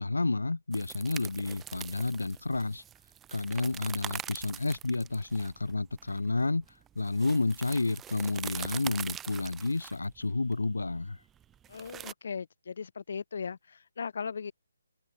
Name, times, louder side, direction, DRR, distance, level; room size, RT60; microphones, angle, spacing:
voice 1, 0.0-2.8 3.3-11.2, left 3 dB, 85° left, 0.7 m, -30 dB
sound 1, 0.7-12.1, right 10 dB, 10° right, 1.4 m, -43 dB
voice 2, 11.7-14.5, left 6 dB, 55° left, 1.0 m, -38 dB
open air
figure-of-eight pair, 155°, 0 cm